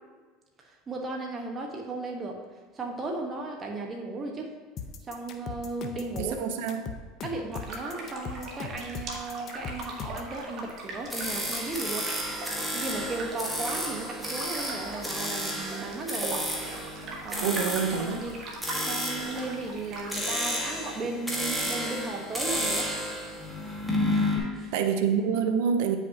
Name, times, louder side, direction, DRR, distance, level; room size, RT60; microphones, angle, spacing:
voice 1, 0.6-2.4 2.7-4.5 5.0-6.4 7.2-12.1 12.7-16.5 17.2-17.6 17.9-18.5 18.8-22.9 24.1-24.8, right 2 dB, 30° right, 1 dB, 1.1 m, -36 dB
sound 1, 4.8-10.3, left 6 dB, 45° left, 0.7 m, -39 dB
voice 2, 6.2-6.8 17.4-18.2 24.7-26.0, right 7 dB, 75° right, 7 dB, 0.5 m, -26 dB
sound 2, 7.5-20.3, right 2 dB, 50° right, 1.5 m, -41 dB
sound 3, 11.1-24.4, equal, 5° right, 1.5 m, -32 dB
8.9 x 5.8 x 2.8 m, 1.4 s
supercardioid pair, 95°, 0 cm